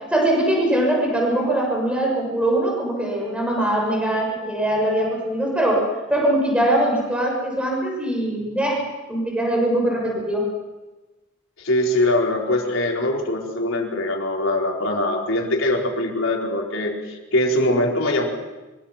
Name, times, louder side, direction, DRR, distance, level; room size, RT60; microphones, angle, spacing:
voice 1, 0.0-5.8 6.1-8.8 9.1-10.5, right 1 dB, 5° right, -1 dB, 6.6 m, -22 dB
voice 2, 11.6-18.3, left 1 dB, 90° left, 0 dB, 4.5 m, -22 dB
25.0 x 24.0 x 5.9 m, 1.1 s
head